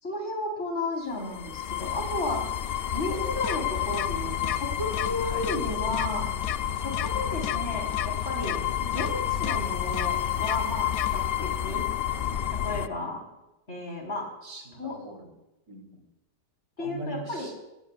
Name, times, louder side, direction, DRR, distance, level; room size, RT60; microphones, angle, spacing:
voice 1, 0.0-2.5 2.9-6.3 6.7-11.8 12.5-13.3 13.7-14.3 14.8-15.0 16.8-17.5, left 2 dB, 40° left, -1 dB, 4.8 m, -33 dB
sound 1, 1.1-12.9, left 10 dB, 80° left, 0.5 m, -30 dB
sound 2, 3.4-3.6 3.9-4.1 4.4-4.6 4.9-5.1 5.4-5.6 5.9-6.1 6.4-6.6 6.9-7.1 7.4-7.6 7.9-8.1 8.4-8.6 8.9-9.1 9.4-9.6 9.9-10.1 10.4-10.6 10.9-11.1, left 11 dB, 65° left, 1.0 m, -32 dB
voice 2, 14.4-15.3 15.7-16.0 16.8-17.5, right 2 dB, 60° right, 1 dB, 4.1 m, -41 dB
25.0 x 20.0 x 2.5 m, 0.97 s
omnidirectional pair, 1.8 m